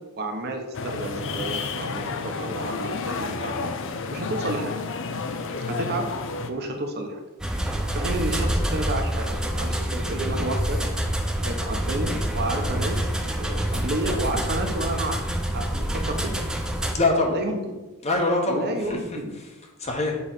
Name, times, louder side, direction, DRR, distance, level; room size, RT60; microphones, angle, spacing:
voice 1, 0.2-3.7 4.1-4.7 5.6-6.1 6.5-7.2 7.9-10.8 11.4-13.1 13.4-15.2 15.5-16.3 17.3-17.8 18.5-19.4, right 1 dB, 50° right, 4 dB, 0.8 m, -31 dB
sound 1, 0.7-6.5, left 4 dB, 60° left, 0.5 m, -31 dB
sound 2, 7.4-17.0, right 1 dB, 5° right, 0.5 m, -27 dB
voice 2, 16.9-17.4 18.0-19.0 19.4-19.5 19.8-20.2, left 2 dB, 30° left, 1 dB, 1.0 m, -24 dB
7.1 x 3.1 x 5.5 m, 1.1 s
head